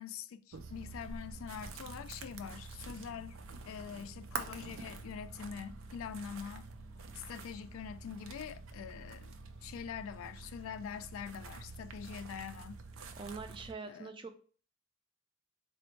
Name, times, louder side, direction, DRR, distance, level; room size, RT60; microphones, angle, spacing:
voice 1, 0.0-3.4 3.7-6.7 7.1-9.3 9.6-12.8 13.8-14.1, left 7 dB, 85° left, 0.3 m, -44 dB
sound 1, 0.5-13.7, right 4 dB, 90° right, 0.5 m, -47 dB
voice 2, 13.2-14.3, right 4 dB, 25° right, 0.3 m, -44 dB
4.1 x 2.1 x 4.3 m
head